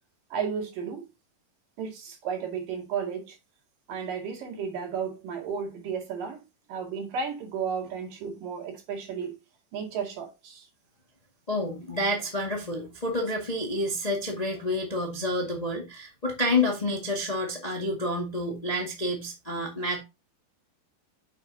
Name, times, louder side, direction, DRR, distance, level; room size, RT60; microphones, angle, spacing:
voice 1, 0.3-1.1 1.8-3.4 3.9-9.3 9.7-10.7 11.9-12.0, right 6 dB, 70° right, 3.8 m, -33 dB
voice 2, 11.5-20.0, left 1 dB, 20° left, 1.0 m, -29 dB
9.1 x 6.5 x 2.8 m
omnidirectional pair, 4.1 m